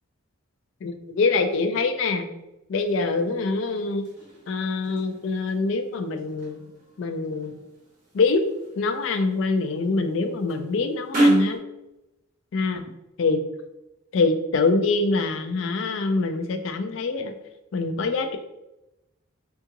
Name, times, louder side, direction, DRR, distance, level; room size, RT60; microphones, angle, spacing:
voice 1, 0.8-2.3 2.7-4.1 4.5-6.7 7.0-7.6 8.1-8.4 8.8-11.6 12.5-12.8 13.2-13.4 14.1-17.3 17.7-18.4, left 3 dB, 60° left, 6 dB, 0.3 m, -24 dB
sound 1, 2.8-11.6, right 1 dB, 40° right, 1.1 m, -31 dB
3.6 x 2.3 x 2.8 m, 0.94 s
head